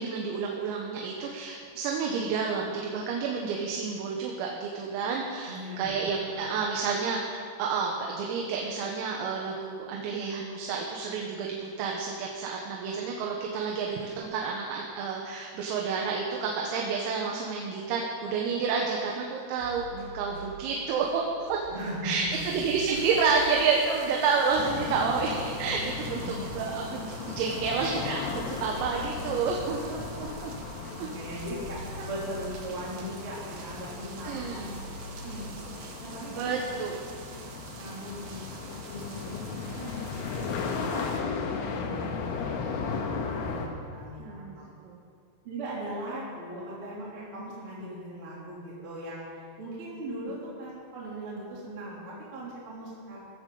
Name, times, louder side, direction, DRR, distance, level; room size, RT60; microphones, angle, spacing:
voice 1, 0.0-21.6 22.0-30.5 31.0-31.1 32.0-32.1 34.2-34.8 36.3-37.0 44.2-45.0, right 5 dB, 90° right, -1 dB, 3.9 m, -30 dB
voice 2, 5.5-6.5 21.7-22.4 22.9-23.0 26.1-26.7 30.9-34.7 35.2-35.7 36.0-36.8 37.8-39.9 40.3-44.7 45.4-49.2 49.6-53.2, right 1 dB, 30° right, -7 dB, 3.4 m, -39 dB
sound 1, 19.6-36.5, equal, 55° left, 3.7 m, -46 dB
sound 2, 22.3-41.2, right 4 dB, 70° right, 3.4 m, -47 dB
sound 3, 24.6-43.7, left 5 dB, 75° left, 3.6 m, -36 dB
16.5 x 15.0 x 3.9 m, 2.3 s
omnidirectional pair, 6.0 m